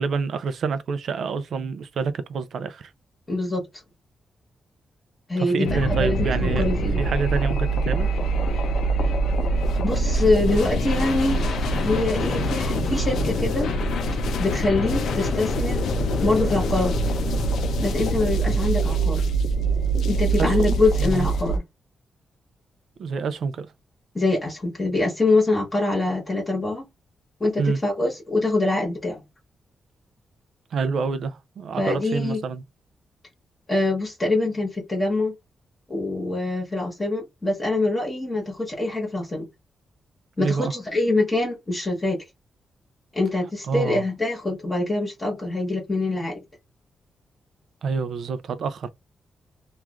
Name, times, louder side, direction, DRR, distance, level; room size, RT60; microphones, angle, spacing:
voice 1, 0.0-2.9 5.4-8.1 20.4-21.3 23.0-23.7 27.6-27.8 30.7-32.6 40.4-40.7 43.7-44.1 47.8-48.9, right 5 dB, 60° right, 0.4 m, -27 dB
voice 2, 3.3-3.6 5.3-7.0 9.8-13.7 14.4-15.8 16.2-16.9 17.8-19.2 20.1-21.6 24.1-26.8 27.4-29.2 31.8-32.4 33.7-35.3 35.9-39.5 40.4-42.2 43.1-46.4, left 2 dB, 20° left, 1.1 m, -24 dB
sound 1, 5.6-21.6, right 1 dB, 85° left, 0.5 m, -24 dB
3.1 x 2.4 x 2.4 m
wide cardioid pair, 160°, 0 cm